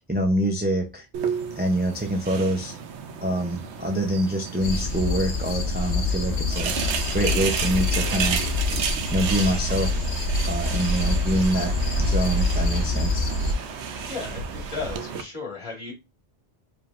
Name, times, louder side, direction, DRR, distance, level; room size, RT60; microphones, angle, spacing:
voice 1, 0.1-1.1 1.6-2.8 3.2-8.4 9.1-10.1 10.4-13.3, right 1 dB, 15° right, 0.4 m, -26 dB
sound 1, 1.1-15.2, right 6 dB, 85° right, 0.9 m, -32 dB
sound 2, 4.6-13.5, left 2 dB, 60° left, 0.9 m, -26 dB
voice 2, 14.1-15.9, left 4 dB, 25° left, 1.9 m, -35 dB
4.8 x 3.3 x 2.5 m
omnidirectional pair, 1.1 m